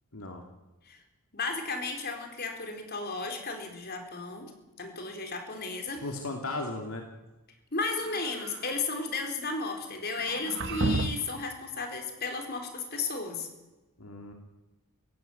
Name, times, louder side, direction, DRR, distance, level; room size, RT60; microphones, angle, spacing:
voice 1, 0.1-0.4 6.0-7.0 14.0-14.3, left 2 dB, 70° left, 3 dB, 2.6 m, -36 dB
voice 2, 1.3-4.5 4.8-6.0 7.7-13.5, left 3 dB, 45° left, 4 dB, 4.1 m, -34 dB
sound 1, 7.8-8.7 10.2-11.4, right 2 dB, 55° right, 1.1 m, -33 dB
23.0 x 16.5 x 9.3 m, 1.1 s
head